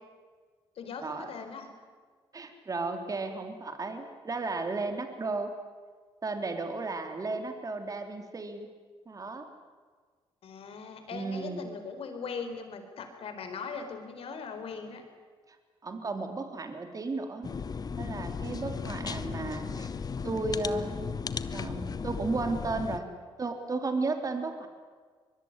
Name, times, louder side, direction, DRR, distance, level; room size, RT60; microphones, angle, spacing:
voice 1, 0.8-1.7 10.4-15.0, left 5 dB, 70° left, 7 dB, 4.6 m, -40 dB
voice 2, 2.3-5.5 6.2-8.7 9.1-9.4 11.1-11.6 15.5-15.6 15.8-17.5 18.0-19.9 20.2-20.9 21.5-23.1 23.4-24.7, right 3 dB, 35° right, 6 dB, 3.3 m, -34 dB
sound 1, 17.4-23.0, left 5 dB, 40° left, 1.3 m, -35 dB
23.5 x 22.0 x 9.8 m, 1.5 s
cardioid pair, 85°, 10 cm